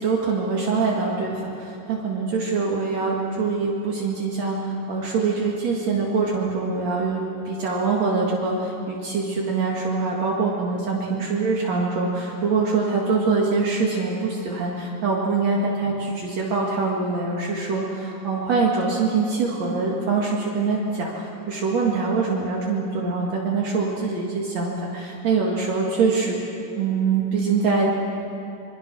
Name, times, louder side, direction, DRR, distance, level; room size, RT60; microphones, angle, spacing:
voice 1, 0.0-26.4 26.7-27.9, right 4 dB, 65° right, -3 dB, 3.2 m, -24 dB
26.0 x 23.5 x 6.2 m, 2.7 s
omnidirectional pair, 3.4 m